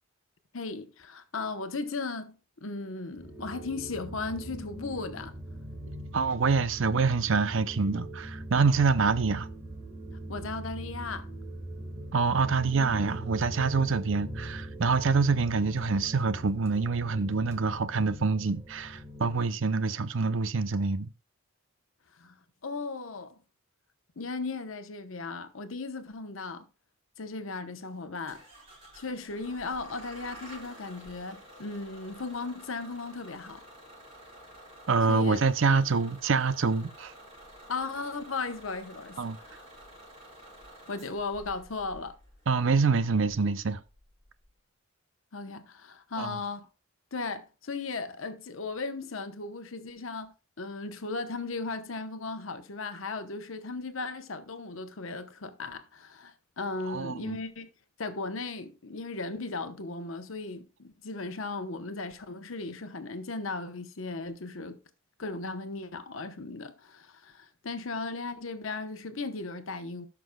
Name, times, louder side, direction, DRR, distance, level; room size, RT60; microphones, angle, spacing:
voice 1, 0.5-5.3 10.3-11.3 22.2-22.4 22.6-23.4 24.2-26.7 27.2-28.4 28.9-33.6 35.1-35.4 37.7-39.6 40.9-42.2 45.3-46.7 47.1-57.7 58.0-64.8 65.2-70.1, left 3 dB, 70° left, 0.9 m, -36 dB
sound 1, 3.1-19.4, right 1 dB, 15° right, 1.5 m, -41 dB
voice 2, 6.1-9.5 12.1-21.1 34.9-37.1 39.2-39.4 42.5-43.8 46.2-46.4 56.9-57.4, right 4 dB, 60° right, 0.6 m, -26 dB
Bus / Engine starting, 28.3-44.5, right 1 dB, 30° right, 5.2 m, -51 dB
17.5 x 6.0 x 2.3 m
head